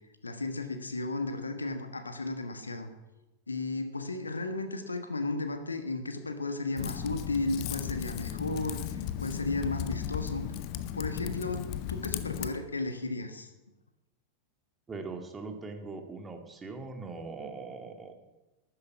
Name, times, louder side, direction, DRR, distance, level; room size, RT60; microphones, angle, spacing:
voice 1, 0.2-2.9 3.5-10.5 10.9-13.5, left 2 dB, 80° left, 8 dB, 1.4 m, -34 dB
Typing, 6.8-12.5, left 11 dB, 45° left, 0.9 m, -36 dB
voice 2, 14.9-18.1, right 3 dB, 15° right, 5 dB, 2.0 m, -41 dB
13.0 x 9.7 x 8.4 m, 1.0 s
figure-of-eight pair, 90°, 0 cm